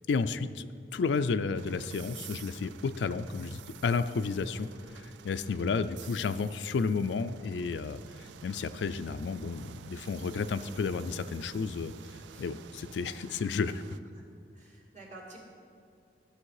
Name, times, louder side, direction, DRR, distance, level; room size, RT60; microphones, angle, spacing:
voice 1, 0.1-0.7 0.9-11.9 12.4-13.8, left 4 dB, 85° left, 12 dB, 0.4 m, -32 dB
sound 1, 1.5-14.0, right 9 dB, 80° right, 0.3 m, -51 dB
voice 2, 14.5-15.4, right 2 dB, 45° right, -3 dB, 2.1 m, -50 dB
12.5 x 6.5 x 4.8 m, 2.5 s
head